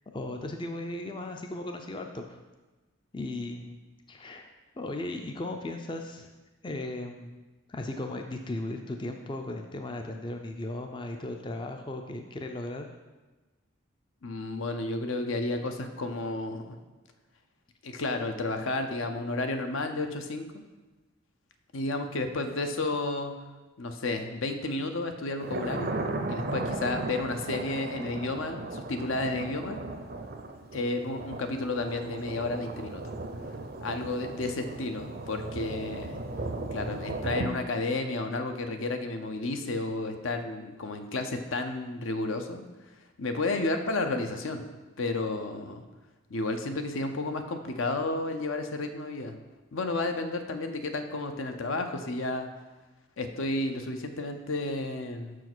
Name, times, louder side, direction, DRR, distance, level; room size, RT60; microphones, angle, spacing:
voice 1, 0.1-2.4 3.1-3.8 4.1-4.5 4.8-6.3 6.6-7.4 7.7-12.9, left 2 dB, 25° left, 4 dB, 0.4 m, -36 dB
voice 2, 14.2-16.8 17.8-20.5 21.7-23.4 23.8-26.0 26.3-29.8 30.7-33.2 33.8-36.2 36.7-42.6 43.2-44.6 45.0-45.8 46.3-49.3 49.7-52.5 53.2-55.4, left 2 dB, 75° left, 6 dB, 0.7 m, -32 dB
Thunder, 25.4-37.5, right 2 dB, 45° right, 0.5 m, -36 dB
6.1 x 4.7 x 6.1 m, 1.2 s
head